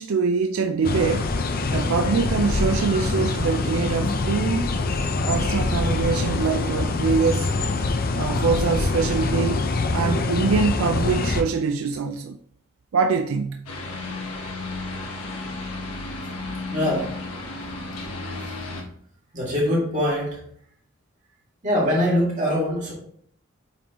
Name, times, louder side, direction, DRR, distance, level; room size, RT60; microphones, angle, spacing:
voice 1, 0.0-1.3 1.7-4.7 5.3-7.5 8.1-9.7 9.9-12.4 12.9-13.6, right 5 dB, 70° right, 0.4 m, -24 dB
sound 1, 0.8-11.4, left 3 dB, 40° left, 0.5 m, -24 dB
sound 2, 13.7-18.8, left 2 dB, 85° left, 1.3 m, -33 dB
voice 2, 16.7-17.2 18.4-18.6 19.3-20.4 21.6-22.9, equal, 35° right, 2.1 m, -23 dB
8.5 x 3.8 x 2.9 m
head